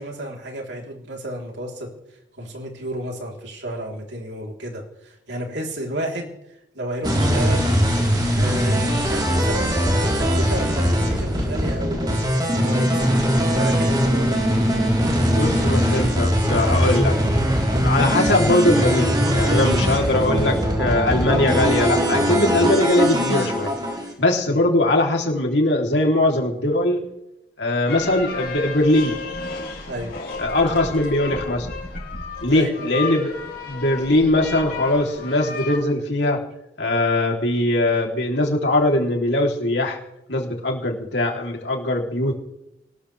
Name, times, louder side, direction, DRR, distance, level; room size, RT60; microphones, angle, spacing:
voice 1, 0.0-1.9 2.4-6.3 6.8-7.7 8.3-13.1 13.5-14.3 29.9-30.1 32.5-32.9, right 1 dB, 80° right, 0 dB, 3.7 m, -31 dB
sound 1, 7.0-24.1, equal, 25° right, 3.9 m, -20 dB
voice 2, 15.3-17.2 17.8-23.7 24.2-27.0 27.6-29.2 30.4-31.7 32.4-33.3 33.7-36.4 36.8-40.0 40.3-42.4, left 1 dB, 75° left, 1 dB, 3.3 m, -21 dB
sound 2, 27.9-35.8, left 3 dB, 55° left, 4.2 m, -33 dB
21.5 x 19.5 x 3.4 m, 0.86 s
head